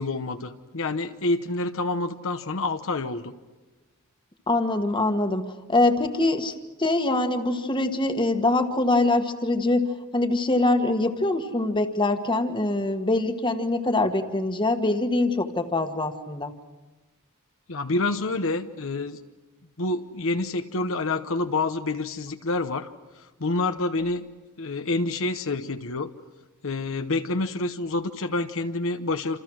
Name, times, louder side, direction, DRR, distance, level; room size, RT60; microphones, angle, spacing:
voice 1, 0.0-3.3 17.7-19.2 19.8-24.3 24.6-26.1 26.6-29.4, left 2 dB, 65° left, 8 dB, 1.0 m, -28 dB
voice 2, 4.5-16.5, left 2 dB, 20° left, 6 dB, 1.5 m, -24 dB
27.5 x 27.5 x 6.3 m, 1.2 s
head